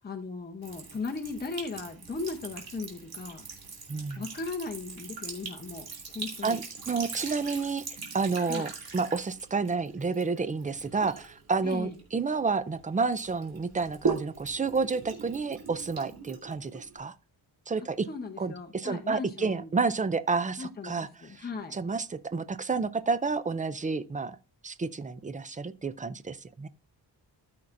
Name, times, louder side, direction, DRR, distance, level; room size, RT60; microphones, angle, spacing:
voice 1, 0.0-3.4 4.2-6.6 8.5-8.7 11.6-12.0 18.1-19.8 20.6-21.7, left 4 dB, 25° left, 0.9 m, -37 dB
Sink (filling or washing) / Trickle dribble, 0.6-12.7 13.1-17.0, right 5 dB, 55° right, 2.5 m, -40 dB
voice 2, 3.9-4.2 6.4-7.8 8.1-17.1 17.7-18.1 18.4-21.1 21.4-21.5 21.7-24.4 24.6-26.7, right 4 dB, 20° right, 0.3 m, -30 dB
13.5 x 5.9 x 2.5 m
wide cardioid pair, 175°, 42 cm